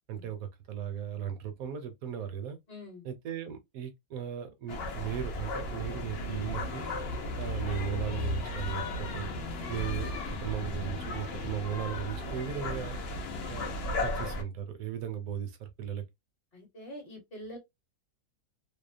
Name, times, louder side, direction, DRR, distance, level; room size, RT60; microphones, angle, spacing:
voice 1, 0.1-2.6 3.1-6.9 7.4-9.3 9.7-10.1 10.4-13.0 13.5-13.7 14.0-16.0, right 9 dB, 70° right, 1.0 m, -37 dB
voice 2, 2.7-3.0 16.5-17.6, left 1 dB, 40° left, 0.9 m, -45 dB
sound 1, 4.7-14.4, left 2 dB, 65° left, 0.6 m, -35 dB
2.8 x 2.0 x 2.5 m
omnidirectional pair, 1.7 m